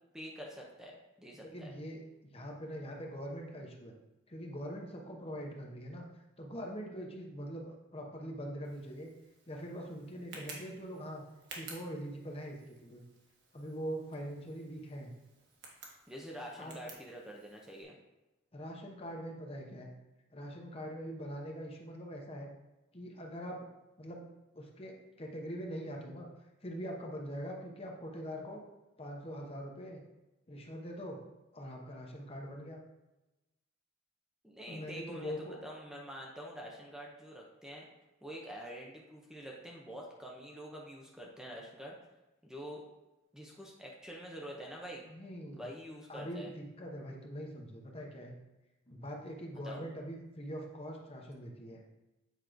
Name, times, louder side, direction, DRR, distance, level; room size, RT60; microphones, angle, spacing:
voice 1, 0.1-0.9 1.2-1.7 16.1-18.0 34.4-37.9 38.2-42.0 42.4-42.8 43.3-45.0 45.6-46.5 49.6-49.9, equal, 5° right, -2 dB, 0.7 m, -46 dB
voice 2, 1.4-3.9 4.3-9.1 9.5-11.2 11.5-13.0 13.5-15.1 16.6-16.8 18.5-19.9 20.3-22.5 22.9-23.7 24.0-24.2 24.5-26.3 26.6-28.6 29.0-30.0 30.5-31.2 31.5-32.8 34.7-35.6 45.1-45.6 46.1-48.3 48.9-51.8, equal, 30° left, 1 dB, 0.9 m, -43 dB
Tick, 8.6-17.8, right 3 dB, 60° right, 1.5 m, -54 dB
8.1 x 3.1 x 5.0 m, 1.0 s
head